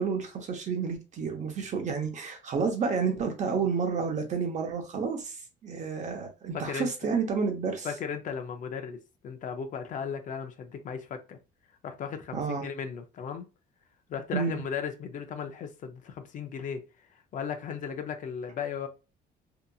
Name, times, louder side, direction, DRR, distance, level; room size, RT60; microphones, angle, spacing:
voice 1, 0.0-5.4 5.6-7.9 12.3-12.6 14.3-14.6, right 5 dB, 45° right, 0.8 m, -30 dB
voice 2, 6.5-6.9 7.8-9.0 9.2-11.4 11.8-13.5 14.1-16.8 17.3-18.9, left 7 dB, 50° left, 0.5 m, -36 dB
2.8 x 2.5 x 2.3 m
cardioid pair, 110°, 17 cm